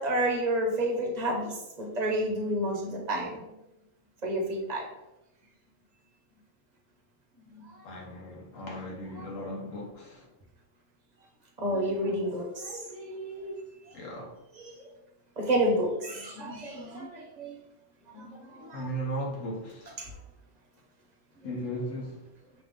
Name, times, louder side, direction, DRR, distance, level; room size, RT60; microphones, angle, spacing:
voice 1, 0.0-3.5 4.2-4.9 7.5-7.6 11.6-13.6 14.6-14.8 15.4-17.5 18.1-18.8 20.0-20.1, right 1 dB, 35° right, 1.0 m, -30 dB
voice 2, 7.8-10.3 13.9-14.4 18.7-20.0 21.4-22.3, right 1 dB, 85° left, 1.3 m, -37 dB
5.9 x 2.4 x 3.6 m
omnidirectional pair, 1.3 m